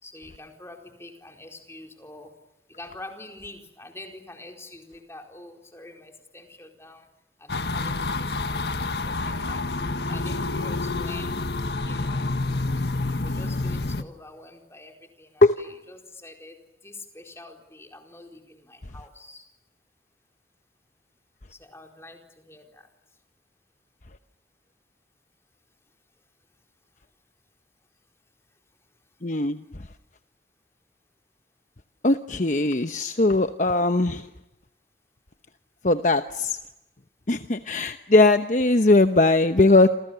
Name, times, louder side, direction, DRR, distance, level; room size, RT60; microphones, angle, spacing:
voice 1, 0.0-2.3 2.7-7.1 7.4-9.6 10.1-11.4 11.8-12.2 13.1-16.6 16.8-19.4 21.5-22.9 39.6-39.9, left 2 dB, 15° left, 3 dB, 4.4 m, -45 dB
sound 1, 7.5-14.0, left 2 dB, 70° left, 1.6 m, -28 dB
voice 2, 29.2-29.6 32.0-34.3 35.8-36.6 37.3-39.9, left 2 dB, 45° left, 9 dB, 1.0 m, -20 dB
29.0 x 28.0 x 7.0 m, 0.90 s
head